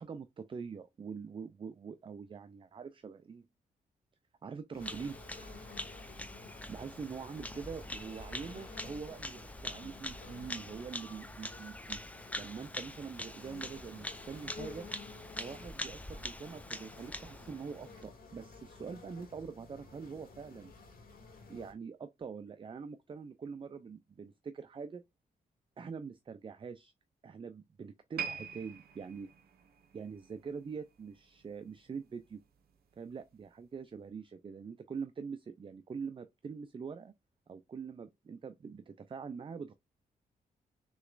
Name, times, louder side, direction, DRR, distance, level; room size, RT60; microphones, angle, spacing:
voice 1, 0.0-3.5 4.4-5.2 6.7-12.0 12.4-14.9 15.4-20.7 21.5-25.0 25.8-26.9 27.2-29.3 29.9-32.4 33.0-37.1 37.5-39.7, right 5 dB, 35° right, 0.4 m, -44 dB
sound 1, 4.7-21.7, left 4 dB, 75° left, 2.0 m, -53 dB
Bird vocalization bird call bird song, 4.8-18.0, left 1 dB, 10° left, 0.6 m, -44 dB
sound 2, 28.2-31.5 31.8-32.0 32.7-32.8, right 7 dB, 80° right, 0.8 m, -44 dB
6.3 x 3.0 x 2.4 m
cardioid pair, 70°, 16 cm